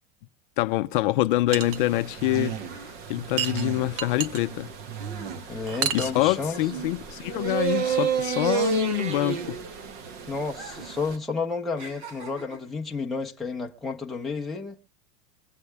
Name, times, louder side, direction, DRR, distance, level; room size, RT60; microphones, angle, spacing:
voice 1, 0.6-2.6 3.1-4.7 5.9-9.6, left 17 dB, 50° left, 0.6 m, -25 dB
sound 1, 1.5-11.2, right 7 dB, 30° right, 0.8 m, -32 dB
sound 2, 1.5-1.8 3.4-4.4 5.7-6.2, right 8 dB, 55° right, 0.9 m, -29 dB
sound 3, 2.7-7.5 7.8-9.9 10.5-11.1 11.3-12.8 13.5-13.7, right 5 dB, 70° right, 4.3 m, -44 dB
voice 2, 5.5-6.6 10.3-14.8, left 4 dB, ahead, 0.8 m, -31 dB
22.5 x 8.3 x 3.3 m
supercardioid pair, 175°, 33 cm